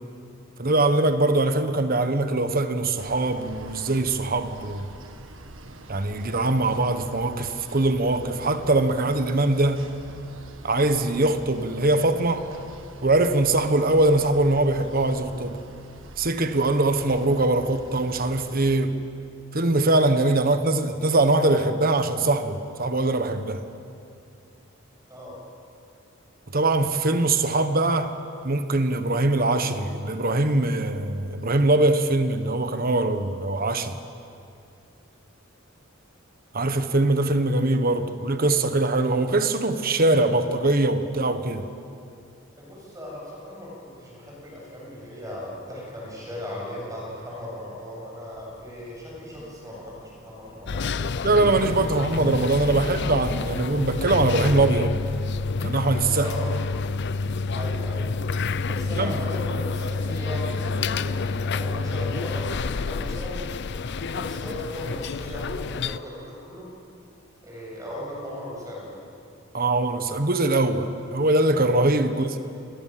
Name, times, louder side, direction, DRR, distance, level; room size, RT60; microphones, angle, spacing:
voice 1, 0.6-4.9 5.9-9.9 10.6-12.5 13.0-15.6 16.2-19.0 19.5-23.6 26.5-28.1 28.4-34.0 36.5-41.7 51.2-54.9 55.6-56.3 59.0-59.1 69.5-72.4, right 2 dB, 45° right, 9 dB, 1.4 m, -22 dB
sound 1, 3.0-18.8, right 2 dB, 70° right, 1.7 m, -45 dB
voice 2, 25.1-25.4 42.5-51.2 56.2-56.5 57.5-58.1 58.6-63.5 64.0-66.7 67.4-69.0, left 1 dB, 15° right, -4 dB, 7.5 m, -37 dB
sound 2, 48.3-62.8, equal, 70° left, 5.9 m, -51 dB
sound 3, 50.7-66.0, left 4 dB, 55° left, 0.5 m, -28 dB
28.5 x 21.5 x 7.7 m, 2.6 s
head